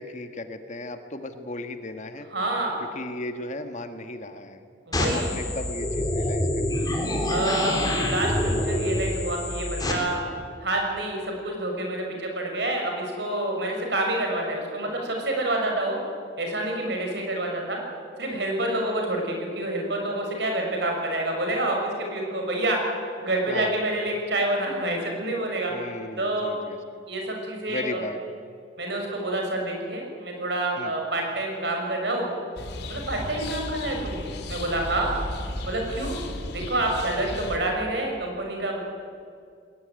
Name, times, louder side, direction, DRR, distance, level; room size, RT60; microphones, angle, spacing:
voice 1, 0.0-2.3 2.9-4.6 5.1-6.7 23.5-23.8 25.7-27.0 27.7-28.2 30.8-31.0, left 2 dB, 40° left, 7 dB, 1.6 m, -36 dB
voice 2, 2.3-2.8 4.9-5.3 7.3-10.2 10.6-16.0 16.4-17.8 18.2-22.8 23.2-25.7 26.2-26.5 27.1-28.0 28.8-32.3 32.9-34.2 34.4-35.1 35.7-36.2 36.5-38.8, right 1 dB, 65° right, 1 dB, 6.6 m, -28 dB
sound 1, 4.9-9.9, left 1 dB, 20° left, 3.7 m, -26 dB
sound 2, 32.6-37.6, left 1 dB, 60° left, 2.8 m, -35 dB
20.5 x 19.5 x 9.7 m, 2.2 s
head